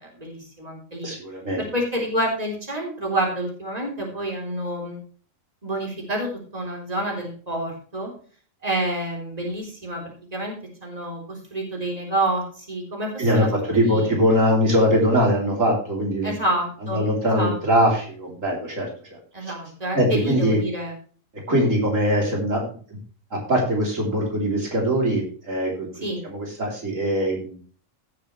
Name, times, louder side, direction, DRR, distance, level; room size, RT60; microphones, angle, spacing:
voice 1, 0.0-1.1 1.6-5.0 5.6-8.1 8.6-10.5 10.8-13.5 13.8-14.1 16.2-17.0 17.3-17.5 19.3-20.9 21.5-21.7 25.9-26.2, right 1 dB, 30° right, 0 dB, 3.8 m, -28 dB
voice 2, 1.0-1.6 13.2-16.3 16.9-19.5 19.9-20.6 21.5-22.6 23.3-25.9 26.2-27.6, equal, 85° right, -1 dB, 3.8 m, -22 dB
17.0 x 7.1 x 3.2 m, 0.43 s
omnidirectional pair, 1.3 m